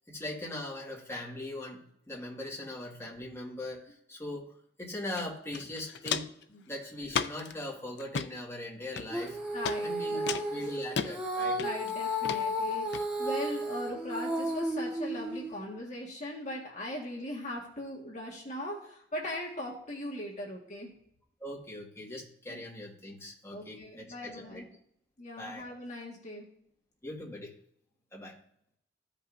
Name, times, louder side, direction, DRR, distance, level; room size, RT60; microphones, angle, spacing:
voice 1, 0.1-4.5 4.8-6.3 6.7-9.4 9.8-11.6 21.4-24.6 25.4-25.7 27.0-27.5 28.1-28.4, left 1 dB, 15° left, -4 dB, 1.9 m, -40 dB
Walk footsteps, 5.2-5.3 5.5-6.4 7.1-7.5 8.0-8.3 9.0-9.3 9.7-9.8 10.3-11.1 11.6-11.9 12.2-12.4 12.9-13.0, left 6 dB, 65° left, 0.5 m, -33 dB
Female singing, 9.1-15.6, equal, 5° right, 1.1 m, -33 dB
voice 2, 9.5-10.3 11.5-20.9 22.5-22.6 23.5-24.7 25.2-26.5, left 1 dB, 40° left, -2 dB, 1.6 m, -40 dB
15.0 x 5.4 x 2.6 m, 0.70 s
head